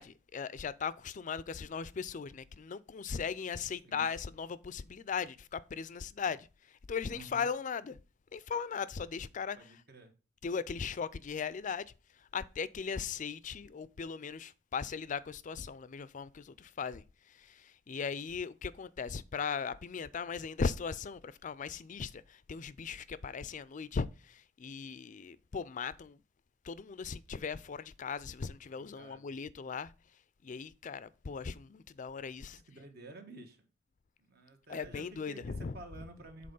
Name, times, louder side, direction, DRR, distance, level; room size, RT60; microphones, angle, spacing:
voice 1, 0.0-8.0 8.3-9.8 10.4-26.2 26.6-29.9 30.4-32.6 34.7-36.0, left 6 dB, 45° left, 0.4 m, -38 dB
voice 2, 7.1-7.5 9.6-10.1 28.9-29.2 32.5-33.7 34.3-36.5, right 2 dB, 60° right, 1.5 m, -51 dB
7.6 x 4.1 x 5.3 m
head